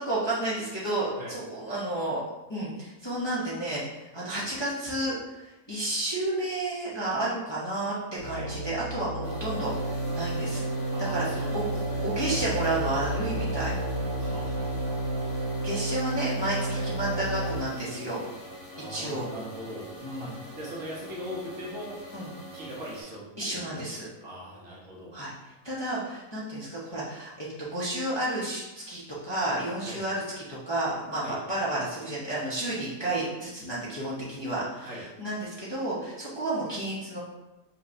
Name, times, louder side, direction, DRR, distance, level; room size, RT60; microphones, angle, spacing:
voice 1, 0.0-2.2 2.5-9.7 10.1-10.6 11.0-11.6 12.0-13.7 15.6-18.2 18.9-19.3 20.0-20.3 22.1-22.3 23.4-24.1 25.1-25.3 25.6-37.2, right 1 dB, 20° left, -9 dB, 0.9 m, -31 dB
sound 1, 8.2-17.6, right 1 dB, 80° right, 2.2 m, -31 dB
sound 2, 9.2-23.0, left 1 dB, 75° left, 2.2 m, -44 dB
voice 2, 10.9-12.0 14.2-15.5 16.7-16.9 18.8-19.9 20.2-22.0 22.5-23.2 23.5-23.8 24.2-25.2 29.8-30.0 31.2-31.4 34.8-35.0, equal, 60° right, -4 dB, 1.4 m, -40 dB
5.5 x 3.0 x 2.7 m, 1.0 s
omnidirectional pair, 1.5 m